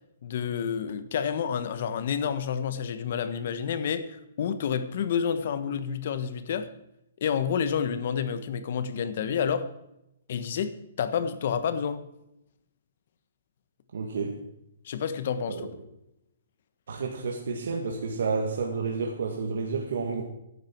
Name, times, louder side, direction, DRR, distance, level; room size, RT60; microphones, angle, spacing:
voice 1, 0.2-6.7 7.2-9.7 10.3-12.0 14.8-15.6, left 7 dB, 50° left, 11 dB, 1.3 m, -29 dB
voice 2, 13.9-14.4 15.5-15.7 16.9-20.2, right 4 dB, 70° right, 1 dB, 2.0 m, -30 dB
14.5 x 11.0 x 4.6 m, 0.84 s
hypercardioid pair, 165°, 0 cm